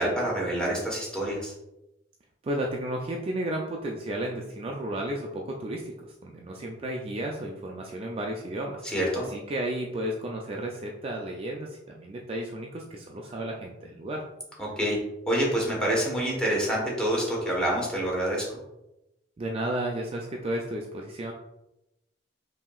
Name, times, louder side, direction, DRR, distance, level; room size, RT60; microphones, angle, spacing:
voice 1, 0.0-1.5 8.8-9.2 14.6-15.0 15.3-18.5, right 1 dB, 5° left, -3 dB, 1.2 m, -27 dB
voice 2, 2.4-8.8 9.2-14.2 19.4-21.3, right 1 dB, 30° right, 0 dB, 0.4 m, -33 dB
5.5 x 2.8 x 2.3 m, 0.90 s
head